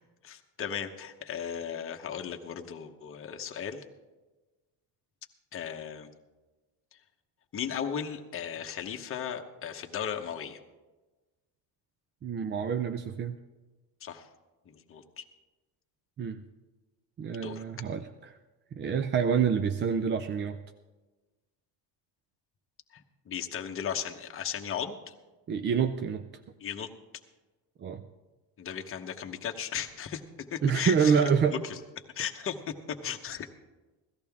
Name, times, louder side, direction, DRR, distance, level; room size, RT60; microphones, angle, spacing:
voice 1, 0.2-3.8 5.5-6.1 7.5-10.6 14.0-14.3 14.7-15.2 17.3-17.6 22.9-23.0 23.3-25.1 26.6-26.9 28.6-31.8 32.1-33.5, left 8 dB, 30° left, 4 dB, 1.0 m, -36 dB
voice 2, 12.2-13.4 16.2-16.4 17.2-18.3 18.7-20.6 25.5-26.3 27.8-28.0 30.6-31.6, right 6 dB, 30° right, 9 dB, 0.4 m, -27 dB
17.0 x 14.0 x 3.6 m, 1.2 s
cardioid pair, 150°, 40 cm